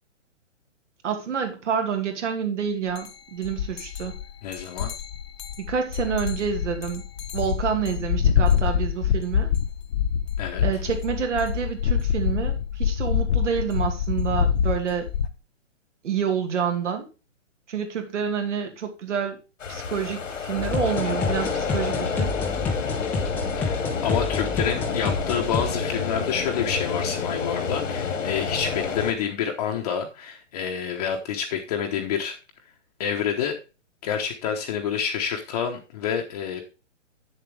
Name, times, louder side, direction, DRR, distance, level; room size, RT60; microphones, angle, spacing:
voice 1, 1.0-4.1 5.6-7.0 7.3-9.5 10.6-15.1 16.0-17.1 17.7-19.4 19.7-22.3, right 7 dB, 70° right, 5 dB, 2.4 m, -28 dB
sound 1, 3.0-3.1 3.4-15.3, left 8 dB, 55° left, 1.0 m, -25 dB
voice 2, 4.4-4.9 10.4-10.6 23.6-32.4 33.0-33.6 34.0-36.6, left 7 dB, 30° left, 2 dB, 1.0 m, -28 dB
sound 2, 19.6-29.1, left 5 dB, 80° left, 1.9 m, -29 dB
sound 3, 20.6-25.7, left 3 dB, 5° left, 0.6 m, -29 dB
8.4 x 7.2 x 3.3 m, 0.31 s
hypercardioid pair, 155°, 38 cm